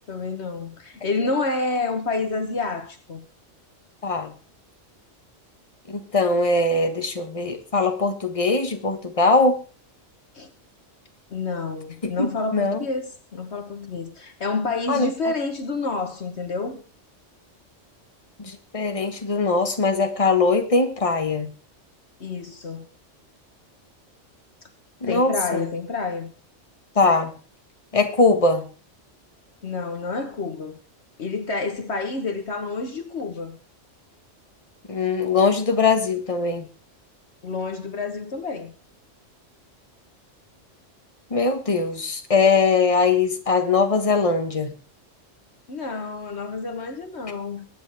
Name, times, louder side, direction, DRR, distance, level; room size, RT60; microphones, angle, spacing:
voice 1, 0.1-3.3 10.3-10.5 11.3-16.8 22.2-22.9 25.1-26.3 29.6-30.8 31.2-33.6 37.4-38.7 45.7-47.7, left 3 dB, 60° left, 1.5 m, -29 dB
voice 2, 5.9-9.6 12.0-12.8 14.9-15.1 18.4-21.5 25.0-25.6 26.9-27.3 27.9-28.6 34.9-36.7 41.3-44.7, left 3 dB, 25° left, 1.6 m, -21 dB
22.5 x 9.6 x 3.5 m
omnidirectional pair, 1.3 m